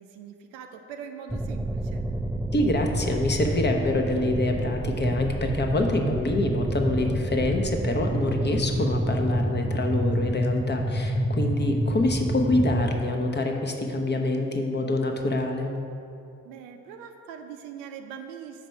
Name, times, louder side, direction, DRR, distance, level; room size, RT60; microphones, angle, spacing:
voice 1, 0.0-2.0 16.4-18.7, right 7 dB, 75° right, 5 dB, 0.5 m, -42 dB
sound 1, 1.3-13.0, equal, 5° right, 0.3 m, -28 dB
voice 2, 2.5-15.7, left 1 dB, 25° left, 3 dB, 0.9 m, -26 dB
5.0 x 4.6 x 5.7 m, 2.6 s
hypercardioid pair, 45°, 40 cm